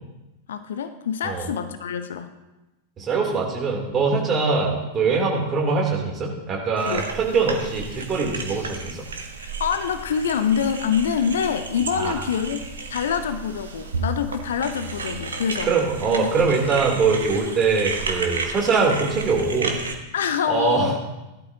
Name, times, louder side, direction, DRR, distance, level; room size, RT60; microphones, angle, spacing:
voice 1, 0.5-2.3 6.9-7.1 9.4-12.6 12.9-15.7 16.1-16.3 20.1-21.0, left 7 dB, 60° left, 9 dB, 0.7 m, -25 dB
voice 2, 3.0-8.9 12.0-12.2 15.7-19.8 20.5-21.0, right 4 dB, 25° right, -1 dB, 3.2 m, -22 dB
sound 1, 6.8-19.9, right 4 dB, 70° right, 1.3 m, -33 dB
17.0 x 12.0 x 2.9 m, 1.0 s
figure-of-eight pair, 90°, 0 cm